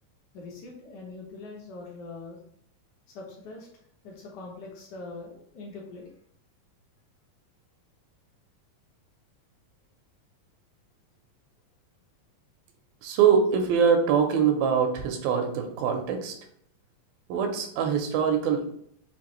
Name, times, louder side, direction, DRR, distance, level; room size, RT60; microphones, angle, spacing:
voice 1, 0.3-2.4 3.1-3.7 4.0-6.1, left 3 dB, 70° left, -2 dB, 2.1 m, -42 dB
voice 2, 13.0-16.3 17.3-18.7, right 7 dB, 85° right, 4 dB, 2.5 m, -23 dB
6.2 x 2.5 x 3.0 m, 0.66 s
omnidirectional pair, 4.0 m